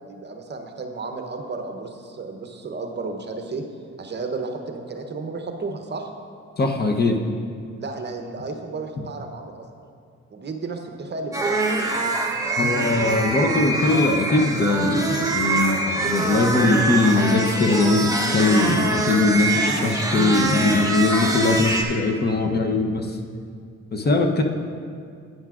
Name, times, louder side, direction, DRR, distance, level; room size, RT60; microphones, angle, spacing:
voice 1, 0.0-3.6 4.0-6.1 7.8-9.7 10.3-11.9, right 3 dB, 35° right, 4 dB, 0.8 m, -33 dB
voice 2, 6.6-7.2 12.6-23.2 23.9-24.4, left 3 dB, 35° left, 3 dB, 0.8 m, -21 dB
sound 1, 11.3-21.8, right 2 dB, 10° right, 1.0 m, -24 dB
11.5 x 8.9 x 2.4 m, 2.3 s
cardioid pair, 90°, 30 cm